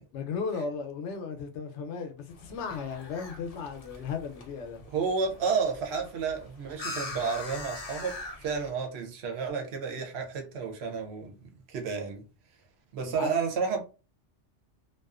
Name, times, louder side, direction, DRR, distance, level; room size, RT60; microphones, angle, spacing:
voice 1, 0.1-4.8 13.0-13.3, left 5 dB, 75° left, 0.9 m, -35 dB
sound 1, 2.3-8.7, left 2 dB, 50° left, 0.4 m, -42 dB
voice 2, 4.9-12.2 12.9-13.8, right 5 dB, 70° right, 0.9 m, -31 dB
2.4 x 2.3 x 2.3 m
omnidirectional pair, 1.2 m